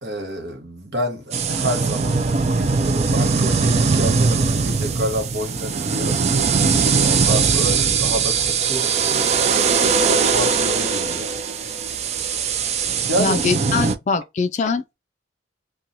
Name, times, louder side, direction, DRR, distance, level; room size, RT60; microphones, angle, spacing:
voice 1, 0.0-6.2 7.0-9.5 9.9-11.3 13.1-13.4, equal, 65° right, 1.0 m, -28 dB
sound 1, 1.3-14.0, right 5 dB, 35° right, 0.3 m, -20 dB
voice 2, 13.2-14.8, left 4 dB, 40° left, 0.3 m, -22 dB
2.9 x 2.3 x 2.6 m
head